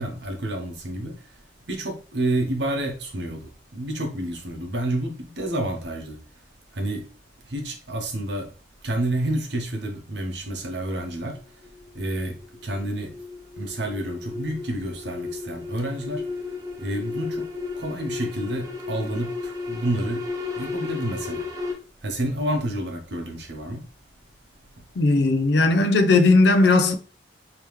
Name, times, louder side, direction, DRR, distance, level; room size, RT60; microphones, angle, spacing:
voice 1, 0.0-1.4 1.7-6.2 6.7-7.0 7.4-8.5 8.8-11.7 11.9-13.2 13.6-16.4 16.8-17.5 17.8-20.3 20.6-21.5 22.0-23.8, right 1 dB, 70° right, 0.9 m, -29 dB
sound 1, 11.3-21.7, left 4 dB, 20° right, 0.7 m, -34 dB
voice 2, 25.0-27.0, left 3 dB, 65° left, 0.5 m, -17 dB
3.4 x 2.9 x 3.1 m
head